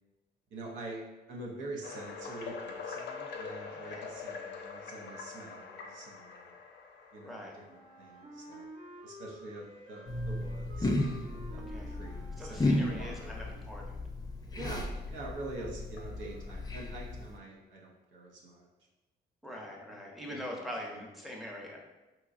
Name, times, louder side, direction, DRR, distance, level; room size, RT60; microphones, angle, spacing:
voice 1, 0.5-6.5 7.1-8.7 9.0-13.5 14.5-18.7 19.5-21.0, right 2 dB, 90° right, -2 dB, 0.7 m, -46 dB
sound 1, 1.8-8.7 9.3-9.5 10.1-10.2 10.7-10.8 12.2-12.3 15.1-15.2 16.0-16.7, left 5 dB, 75° left, 0.5 m, -44 dB
voice 2, 7.2-7.6 11.7-11.9 12.4-14.0 19.4-21.8, left 1 dB, ahead, -1 dB, 0.7 m, -43 dB
Wind instrument woodwind instrument, 7.7-13.5, equal, 45° right, 0.7 m, -50 dB
sound 2, 10.1-17.4, left 1 dB, 20° left, 0.4 m, -34 dB
3.7 x 2.8 x 2.5 m, 1.1 s
cardioid pair, 90°, 19 cm